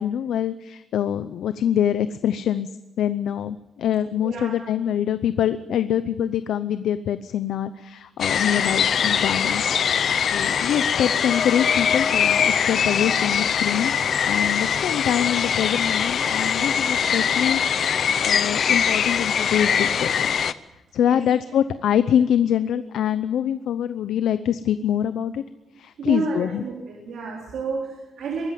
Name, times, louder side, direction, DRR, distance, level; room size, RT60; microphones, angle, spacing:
voice 1, 0.0-2.7 3.0-13.9 14.2-20.3 20.7-25.4 25.8-26.6, left 9 dB, 90° left, 12 dB, 0.7 m, -25 dB
voice 2, 4.2-4.6 21.0-21.2 26.0-28.5, right 4 dB, 70° right, -2 dB, 3.9 m, -30 dB
sound 1, 8.2-20.5, left 7 dB, 50° left, 0.7 m, -22 dB
23.0 x 13.5 x 9.2 m, 1.0 s
wide cardioid pair, 165°, 0 cm